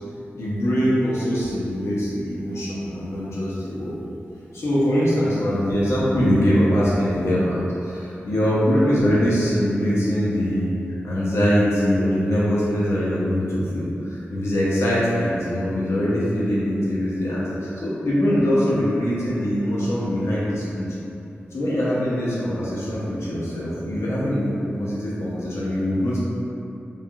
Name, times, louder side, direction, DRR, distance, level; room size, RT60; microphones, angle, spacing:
voice 1, 0.4-4.0 4.5-10.7 11.0-20.8 21.5-26.2, equal, 85° left, -8 dB, 0.7 m, -22 dB
3.2 x 2.5 x 2.3 m, 2.8 s
cardioid pair, 65°, 4 cm